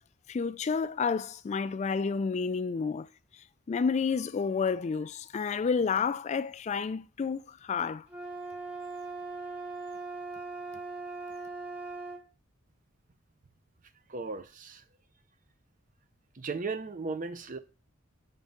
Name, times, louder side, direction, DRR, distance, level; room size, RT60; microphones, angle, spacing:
voice 1, 0.3-3.1 3.7-8.0, left 5 dB, 35° left, 0.3 m, -30 dB
sound 1, 8.1-12.2, right 3 dB, 5° right, 1.1 m, -40 dB
voice 2, 14.1-14.8 16.3-17.6, right 4 dB, 40° right, 0.6 m, -36 dB
5.3 x 3.6 x 5.3 m
head